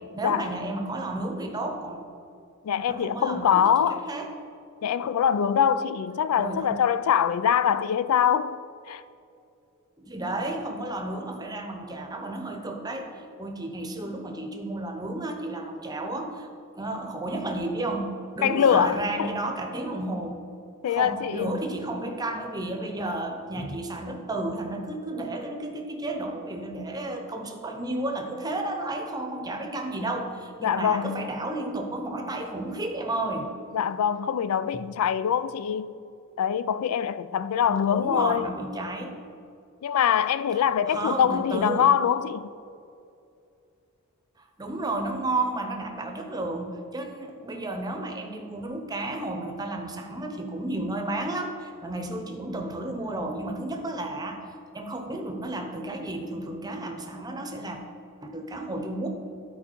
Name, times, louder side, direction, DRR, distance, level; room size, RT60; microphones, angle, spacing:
voice 1, 0.1-2.0 2.9-4.3 6.4-6.8 10.0-13.1 13.4-16.5 16.7-20.4 20.9-33.5 37.9-39.2 40.9-41.9 44.6-54.4 54.7-57.8 58.2-59.1, right 2 dB, 20° right, 0.7 m, -32 dB
voice 2, 2.6-4.0 4.8-8.6 8.9-9.0 18.4-19.3 20.8-21.5 30.6-31.3 33.7-35.9 36.4-38.5 39.8-42.5, left 8 dB, 85° left, 0.3 m, -24 dB
12.5 x 4.7 x 4.5 m
head